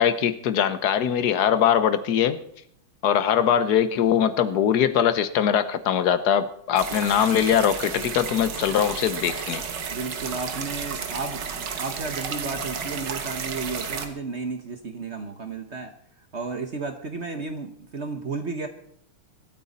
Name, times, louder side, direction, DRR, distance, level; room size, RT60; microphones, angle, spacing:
voice 1, 0.0-2.4 3.0-9.6, left 9 dB, 60° left, 12 dB, 1.3 m, -22 dB
sound 1, 6.8-14.1, right 6 dB, 60° right, 1.9 m, -32 dB
voice 2, 9.9-15.9 16.3-18.7, right 4 dB, 45° right, 7 dB, 1.0 m, -33 dB
24.0 x 9.1 x 4.2 m, 0.67 s
omnidirectional pair, 2.3 m